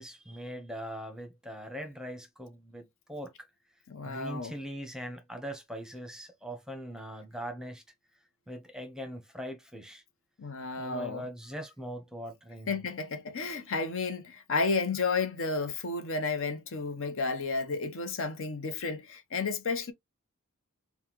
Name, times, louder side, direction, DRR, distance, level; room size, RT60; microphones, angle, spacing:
voice 1, 0.0-3.3 4.0-7.8 8.5-10.0 10.8-12.8, equal, 5° right, 0.8 m, -41 dB
voice 2, 3.9-4.5 10.4-11.2 12.7-19.9, left 4 dB, 60° left, 0.8 m, -32 dB
5.4 x 2.3 x 2.9 m
head